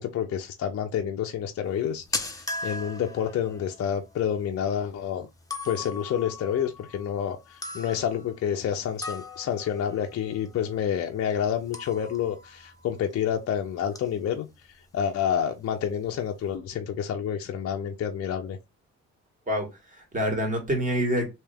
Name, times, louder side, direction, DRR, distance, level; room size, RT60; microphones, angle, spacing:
voice 1, 0.0-5.3 5.6-14.5 14.9-18.6, left 8 dB, 50° left, 0.6 m, -29 dB
sound 1, 1.6-13.6 13.9-14.2 14.5-14.7 15.3-15.4 15.6-16.2, left 3 dB, 10° left, 0.8 m, -39 dB
voice 2, 19.5-21.3, equal, 25° right, 1.9 m, -27 dB
3.3 x 2.8 x 3.4 m
cardioid pair, 90°, 30 cm